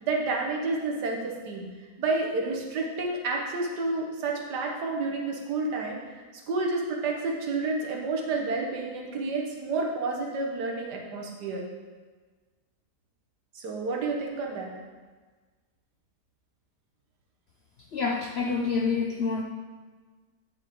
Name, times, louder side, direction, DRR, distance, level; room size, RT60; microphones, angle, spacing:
voice 1, 0.0-1.7 2.0-6.0 6.5-11.7 13.6-14.7, right 3 dB, 85° right, 0 dB, 1.8 m, -30 dB
voice 2, 17.8-19.4, left 5 dB, 60° left, 0 dB, 0.6 m, -27 dB
9.0 x 6.7 x 3.7 m, 1.4 s
omnidirectional pair, 1.7 m